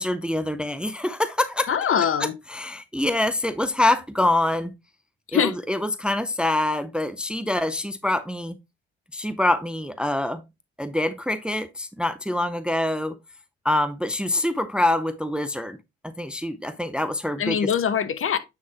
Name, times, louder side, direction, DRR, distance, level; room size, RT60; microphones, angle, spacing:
voice 1, 0.0-1.7 2.2-4.7 5.3-8.6 9.1-10.4 10.8-13.2 13.6-15.8 16.0-17.7, left 1 dB, 5° right, 0.6 m, -25 dB
voice 2, 1.7-2.3 5.3-5.5 17.4-18.4, left 8 dB, 45° left, 0.9 m, -23 dB
9.3 x 3.7 x 3.0 m
hypercardioid pair, 55°, 31 cm